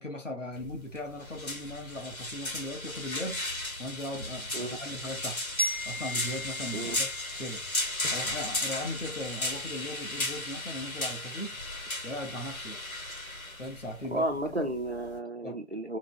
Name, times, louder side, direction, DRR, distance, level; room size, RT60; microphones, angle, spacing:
voice 1, 0.0-3.5 3.8-5.4 5.8-7.1 7.4-7.6 8.1-11.6 12.0-12.8 13.6-14.7 15.4-15.6, left 1 dB, 65° left, 1.3 m, -38 dB
sound 1, 0.5-15.2, left 2 dB, 80° left, 1.6 m, -35 dB
Glockenspiel, 5.6-8.4, equal, 35° left, 1.1 m, -37 dB
voice 2, 14.1-16.0, right 1 dB, 50° right, 0.7 m, -32 dB
4.9 x 2.3 x 2.2 m
figure-of-eight pair, 175°, 42 cm